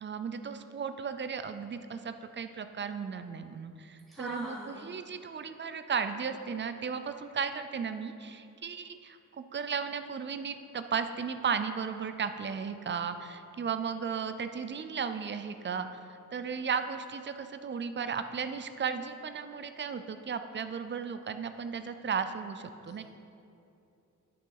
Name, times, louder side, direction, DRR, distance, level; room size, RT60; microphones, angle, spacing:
voice 1, 0.0-23.0, right 6 dB, 35° right, 9 dB, 0.4 m, -35 dB
voice 2, 4.1-4.9, equal, ahead, -7 dB, 1.0 m, -41 dB
9.8 x 6.2 x 4.6 m, 2.7 s
wide cardioid pair, 180°, 33 cm